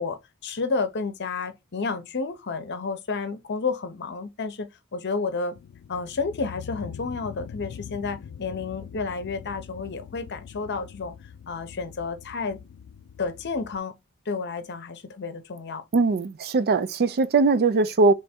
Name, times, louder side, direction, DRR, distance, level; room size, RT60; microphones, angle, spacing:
voice 1, 0.0-5.5 5.9-11.1 11.5-12.6 13.2-13.9 14.3-15.8, left 4 dB, 55° left, 0.7 m, -31 dB
sound 1, 5.5-13.8, left 8 dB, 80° left, 0.4 m, -43 dB
voice 2, 15.9-18.1, right 3 dB, 45° right, 0.4 m, -20 dB
3.4 x 3.1 x 4.2 m
head